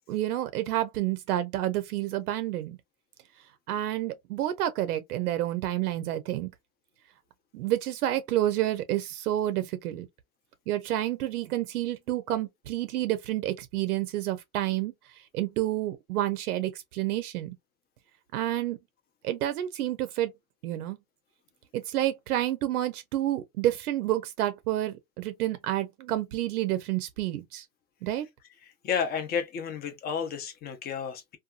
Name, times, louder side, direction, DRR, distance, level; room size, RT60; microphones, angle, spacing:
voice 1, 0.1-2.8 3.7-6.5 7.5-10.1 10.7-17.5 18.3-18.8 19.2-20.3 20.6-21.0 21.7-27.6 28.0-28.3, right 13 dB, 70° right, 0.6 m, -29 dB
voice 2, 28.6-31.4, left 7 dB, 20° left, 0.6 m, -32 dB
2.6 x 2.3 x 2.4 m
hypercardioid pair, 115°, 46 cm